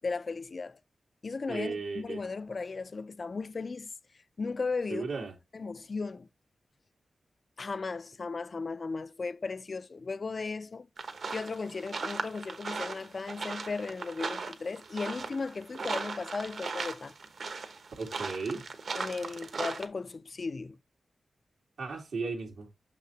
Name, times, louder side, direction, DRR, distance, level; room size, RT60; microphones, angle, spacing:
voice 1, 0.0-0.8 1.2-3.9 4.4-5.1 5.5-6.3 7.6-10.9 11.3-17.2 19.0-20.8, left 4 dB, 40° left, 0.3 m, -36 dB
voice 2, 1.5-2.2 4.9-5.3 18.0-18.7 21.8-22.7, right 4 dB, 90° right, 2.2 m, -35 dB
sound 1, 11.0-19.9, right 4 dB, 60° right, 1.1 m, -38 dB
6.7 x 5.8 x 2.9 m
wide cardioid pair, 145°, 0 cm